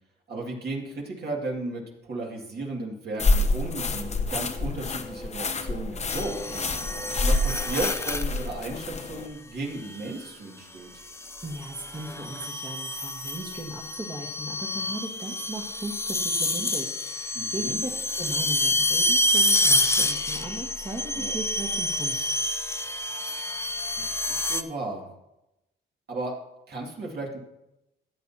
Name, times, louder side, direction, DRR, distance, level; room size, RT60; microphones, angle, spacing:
voice 1, 0.3-6.9 7.2-10.9 17.3-17.8 21.1-21.3 24.0-25.1 26.1-26.3 26.7-27.4, right 2 dB, 55° right, -1 dB, 2.4 m, -35 dB
sound 1, 3.2-9.3, left 2 dB, 35° left, 0.9 m, -27 dB
sound 2, 6.1-8.5 9.8-10.2 11.1-24.6, left 1 dB, 15° left, 0.6 m, -28 dB
voice 2, 11.4-22.3, right 2 dB, 25° right, 0 dB, 1.5 m, -37 dB
13.5 x 8.4 x 2.9 m, 0.91 s
cardioid pair, 90°, 20 cm